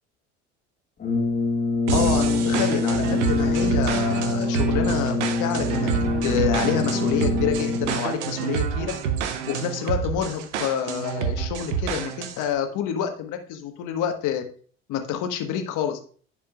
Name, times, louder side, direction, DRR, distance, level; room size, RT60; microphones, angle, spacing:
Brass instrument, 1.0-8.1, left 3 dB, 25° left, 1.8 m, -25 dB
voice 1, 1.9-8.9 9.5-14.4 14.9-16.0, left 9 dB, 60° left, 6 dB, 1.3 m, -28 dB
sound 1, 1.9-12.5, right 8 dB, 80° right, 0.8 m, -27 dB
10.0 x 5.0 x 2.3 m, 0.43 s
hypercardioid pair, 65°, 35 cm